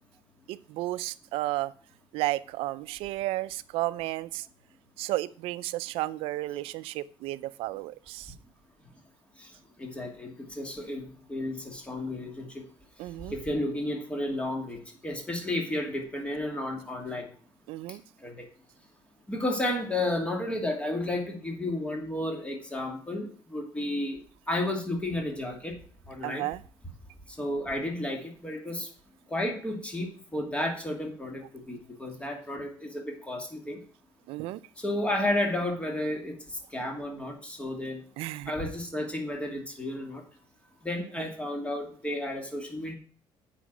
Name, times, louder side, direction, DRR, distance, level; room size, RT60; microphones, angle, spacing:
voice 1, 0.5-1.7 2.1-4.5 5.0-8.3 13.0-13.3 17.7-18.0 26.2-26.6 34.3-34.6 38.2-38.5 41.2-41.3, right 17 dB, 85° right, 15 dB, 0.5 m, -33 dB
voice 2, 9.8-12.7 13.3-17.3 18.2-18.4 19.3-24.2 24.5-25.8 26.1-26.5 27.4-28.9 29.3-33.8 34.8-36.4 36.7-38.0 38.5-40.2 40.8-42.9, left 1 dB, 15° left, 2 dB, 2.5 m, -32 dB
8.3 x 5.9 x 6.1 m, 0.43 s
cardioid pair, 115°, 9 cm